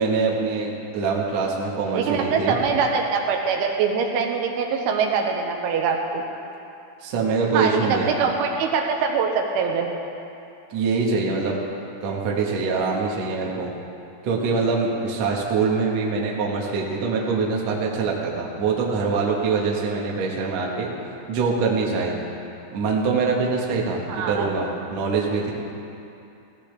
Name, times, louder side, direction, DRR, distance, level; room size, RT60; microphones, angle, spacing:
voice 1, 0.0-2.6 7.0-8.1 10.7-11.6 12.0-13.7 14.2-20.9 21.3-22.2 22.7-25.5, right 4 dB, 65° right, -2 dB, 1.6 m, -24 dB
voice 2, 1.9-6.2 7.5-9.9 24.1-24.5, right 5 dB, 80° right, 2 dB, 3.4 m, -23 dB
17.5 x 16.0 x 3.4 m, 2.7 s
omnidirectional pair, 5.6 m